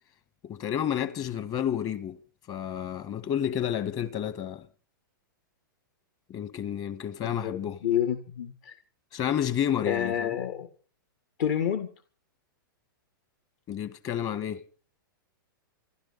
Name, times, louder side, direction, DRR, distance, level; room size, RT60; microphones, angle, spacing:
voice 1, 0.4-2.2 2.5-4.7 6.3-7.8 9.1-10.4 13.7-14.7, left 9 dB, 30° left, 1.8 m, -30 dB
voice 2, 7.2-8.7 9.8-10.7 11.4-11.9, left 9 dB, 55° left, 1.8 m, -29 dB
27.0 x 12.0 x 4.2 m
hypercardioid pair, 135°, 12 cm